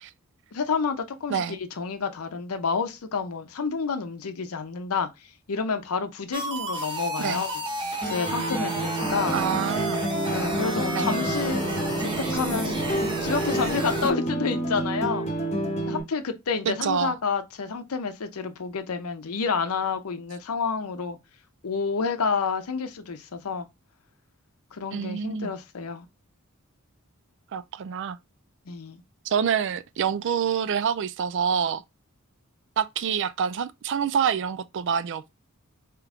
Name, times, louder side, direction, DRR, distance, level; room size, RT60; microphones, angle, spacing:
voice 1, 0.5-7.5 8.1-9.4 10.3-11.6 12.0-12.8 13.2-15.3 15.9-21.2 21.6-23.7 24.7-26.1 28.7-29.0, left 5 dB, 85° left, 0.6 m, -29 dB
sound 1, 6.3-14.1, right 1 dB, 20° right, 1.0 m, -31 dB
sound 2, 8.0-16.0, right 2 dB, 30° left, 0.9 m, -29 dB
voice 2, 9.3-10.0 10.9-11.1 16.7-17.1 24.9-25.5 27.5-28.2 29.3-31.8 32.8-35.5, right 7 dB, 60° right, 0.4 m, -27 dB
3.4 x 3.0 x 3.6 m
head